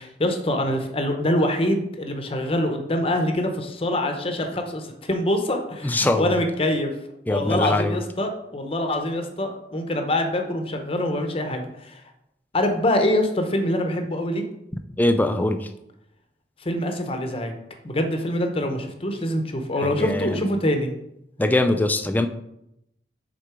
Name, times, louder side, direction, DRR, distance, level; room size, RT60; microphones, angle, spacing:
voice 1, 0.0-6.9 7.3-12.0 12.5-14.4 16.6-17.5 17.8-20.9, left 1 dB, 30° left, 5 dB, 0.8 m, -25 dB
voice 2, 5.8-6.3 7.3-8.0 15.0-15.7 19.8-20.5 21.4-22.3, left 1 dB, 10° left, 8 dB, 0.4 m, -22 dB
6.6 x 3.8 x 4.8 m, 0.82 s
head